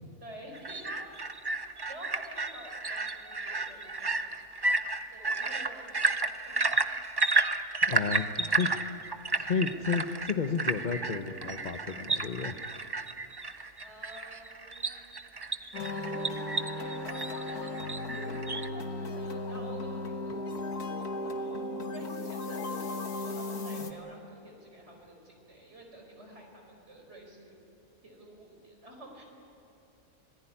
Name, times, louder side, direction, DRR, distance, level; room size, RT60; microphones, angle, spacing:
voice 1, 0.2-1.3 1.9-4.7 5.1-6.6 13.8-15.5 15.9-17.8 18.7-27.6 28.0-29.2, right 1 dB, 45° right, 1 dB, 5.3 m, -50 dB
sound 1, 0.5-18.7, right 3 dB, 30° right, 0.4 m, -32 dB
voice 2, 7.9-8.7 9.4-12.6, left 5 dB, 35° left, 5 dB, 0.9 m, -32 dB
sound 2, 15.7-23.9, left 2 dB, 85° left, 2.0 m, -36 dB
26.5 x 19.0 x 10.0 m, 2.6 s
omnidirectional pair, 1.6 m